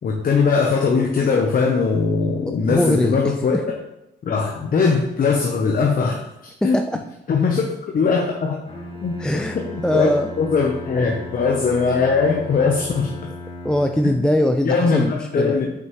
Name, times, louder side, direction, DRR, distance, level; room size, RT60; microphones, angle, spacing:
voice 1, 0.0-3.6 4.2-6.8 7.3-7.7 7.9-8.6 9.0-9.1 9.7-10.1 10.4-13.1 14.0-14.1 14.6-15.7, left 5 dB, 45° left, 0 dB, 0.8 m, -20 dB
voice 2, 2.7-3.6 6.6-7.0 9.2-9.6 9.8-10.3 13.6-15.6, equal, 5° left, 5 dB, 0.3 m, -21 dB
Bowed string instrument, 8.7-14.5, left 2 dB, 25° left, 1.3 m, -36 dB
6.0 x 5.4 x 3.1 m, 0.87 s
cardioid pair, 90°, 20 cm